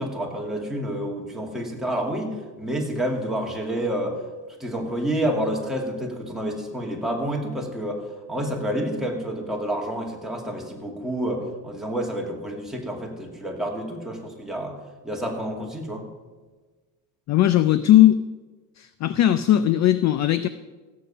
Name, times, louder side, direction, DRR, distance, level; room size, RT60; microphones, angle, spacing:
voice 1, 0.0-4.2 4.6-8.0 8.3-14.8 15.0-16.1, right 1 dB, ahead, -1 dB, 2.3 m, -29 dB
voice 2, 17.3-18.2 18.8-20.5, left 13 dB, 40° left, 14 dB, 0.4 m, -18 dB
16.5 x 7.6 x 5.5 m, 1.3 s
supercardioid pair, 115°, 45 cm